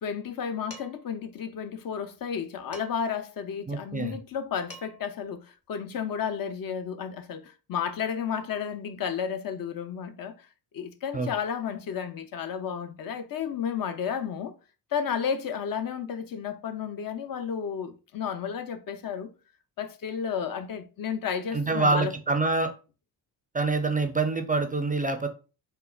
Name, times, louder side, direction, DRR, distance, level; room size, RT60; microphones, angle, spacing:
voice 1, 0.0-10.5 10.7-14.5 14.9-19.3 19.8-22.1, left 7 dB, 55° left, 0.6 m, -32 dB
Dishes pots and pans, 0.7-1.1 2.7-3.2 4.4-4.5 4.7-5.2, left 1 dB, 35° left, 1.0 m, -46 dB
voice 2, 3.7-4.2 11.1-11.3 21.5-22.7 23.5-25.3, right 3 dB, 20° right, 0.3 m, -26 dB
3.6 x 2.1 x 2.2 m
supercardioid pair, 60°, 42 cm